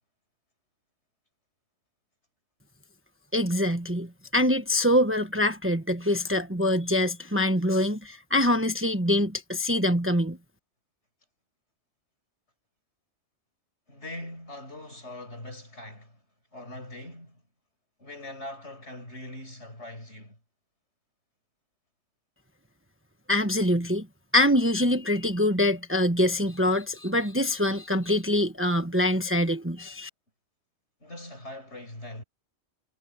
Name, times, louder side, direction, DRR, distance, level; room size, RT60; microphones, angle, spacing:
voice 1, 3.3-10.4 23.3-24.1 24.3-30.1, left 1 dB, 10° right, 1.2 m, -24 dB
voice 2, 13.9-16.2 16.5-17.4 18.0-20.4 31.0-32.2, left 1 dB, 70° left, 7.5 m, -41 dB
omnidirectional pair, 1.2 m